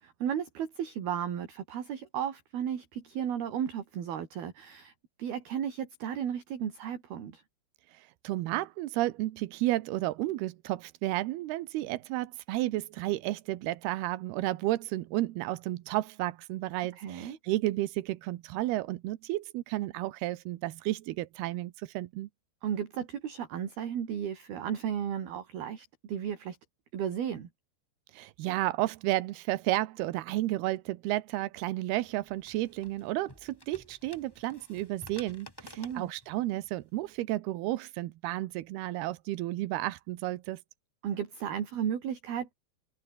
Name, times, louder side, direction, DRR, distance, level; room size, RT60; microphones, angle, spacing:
voice 1, 0.0-4.9 5.2-7.4 17.0-17.4 22.6-26.6 26.9-27.5 35.6-36.1 41.0-42.5, right 9 dB, 55° right, 4.5 m, -34 dB
voice 2, 7.9-22.3 28.1-40.6, right 16 dB, 75° right, 2.5 m, -32 dB
sound 1, 31.8-37.2, left 1 dB, 5° left, 2.4 m, -53 dB
open air
omnidirectional pair, 5.5 m